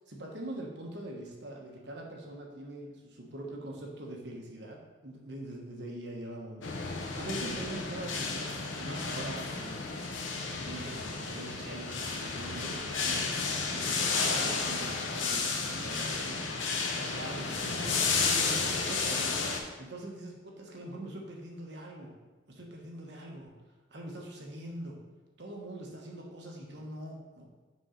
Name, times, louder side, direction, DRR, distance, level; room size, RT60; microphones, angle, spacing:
voice 1, 0.1-9.8 10.5-16.1 16.5-19.4 19.8-22.1 22.5-23.5 23.9-25.0 25.4-27.5, right 1 dB, 60° right, 0 dB, 1.1 m, -43 dB
sound 1, 6.6-19.6, left 4 dB, 80° left, 0.9 m, -32 dB
6.2 x 3.8 x 5.7 m, 1.3 s
head